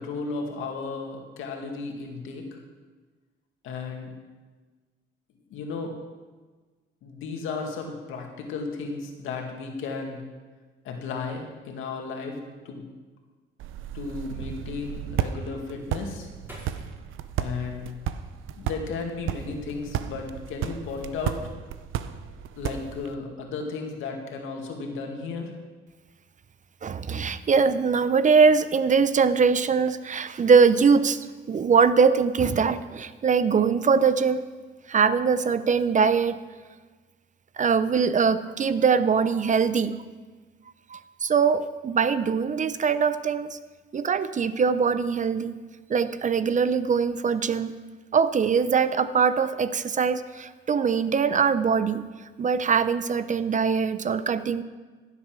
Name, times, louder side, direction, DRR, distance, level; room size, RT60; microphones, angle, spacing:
voice 1, 0.0-2.6 3.6-4.1 5.5-6.0 7.0-10.2 10.8-12.4 12.6-12.8 13.9-16.3 17.4-17.9 18.6-21.4 22.6-25.5, left 4 dB, 90° left, 2 dB, 2.2 m, -34 dB
sound 1, 13.6-23.2, right 10 dB, 85° right, 0.7 m, -34 dB
sound 2, 16.5-18.6 19.1-19.8 20.1-20.6, equal, 10° right, 5.3 m, -50 dB
voice 2, 26.8-34.4 34.9-36.4 37.6-40.0 40.9-43.6 43.9-45.6 45.9-47.7 48.1-52.0 52.4-54.6, right 5 dB, 40° right, 13 dB, 0.7 m, -22 dB
15.5 x 8.3 x 6.2 m, 1.4 s
cardioid pair, 90°, 20 cm